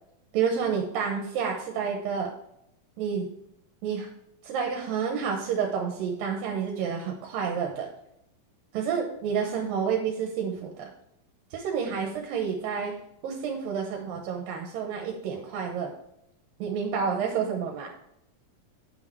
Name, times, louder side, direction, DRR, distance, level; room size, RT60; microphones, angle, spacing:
voice 1, 0.3-2.3 3.0-3.3 3.8-4.1 4.4-7.9 8.7-10.9 11.5-12.9 13.2-15.9 16.6-17.9, right 6 dB, 85° right, 1 dB, 2.8 m, -29 dB
9.6 x 6.5 x 4.5 m, 0.78 s
omnidirectional pair, 3.9 m